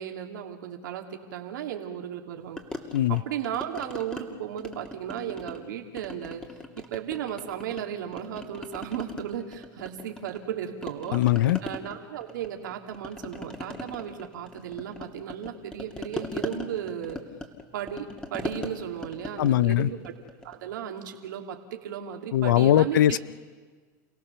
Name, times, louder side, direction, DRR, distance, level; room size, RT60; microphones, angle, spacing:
voice 1, 0.0-2.6 3.1-6.4 6.9-11.2 11.6-17.2 17.7-20.1 20.4-23.2, right 9 dB, 80° right, 3 dB, 2.5 m, -35 dB
sound 1, 2.6-4.2 4.6-5.7 6.0-7.8 8.1-10.5 10.8-20.6, left 2 dB, 10° left, 2.5 m, -40 dB
voice 2, 11.1-11.6 19.4-19.9 22.3-23.2, left 13 dB, 80° left, 18 dB, 0.6 m, -21 dB
29.0 x 17.0 x 6.9 m, 1.5 s
hypercardioid pair, 110°, 10 cm